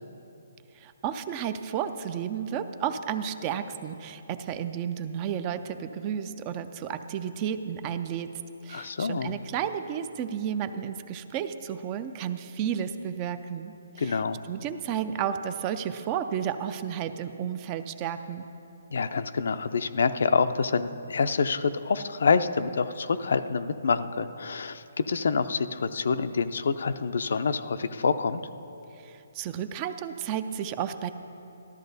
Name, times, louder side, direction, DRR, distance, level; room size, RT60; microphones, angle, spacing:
voice 1, 0.7-14.2 14.5-18.5 29.0-31.1, right 8 dB, 20° right, 10 dB, 0.3 m, -32 dB
voice 2, 8.7-9.4 14.0-14.4 18.9-28.4, left 5 dB, 65° left, 11 dB, 0.5 m, -27 dB
13.5 x 13.0 x 4.0 m, 2.9 s
hypercardioid pair, 170°, 0 cm